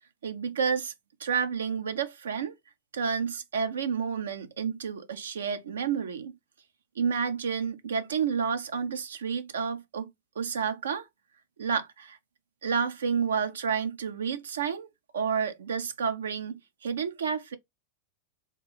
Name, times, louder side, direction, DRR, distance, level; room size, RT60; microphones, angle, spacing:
voice 1, 0.2-0.9 1.2-2.6 2.9-6.3 7.0-10.1 10.4-11.1 11.6-12.2 12.6-14.9 15.1-17.6, right 6 dB, 65° right, 0.5 m, -30 dB
3.6 x 2.6 x 3.1 m
figure-of-eight pair, 90°, 0 cm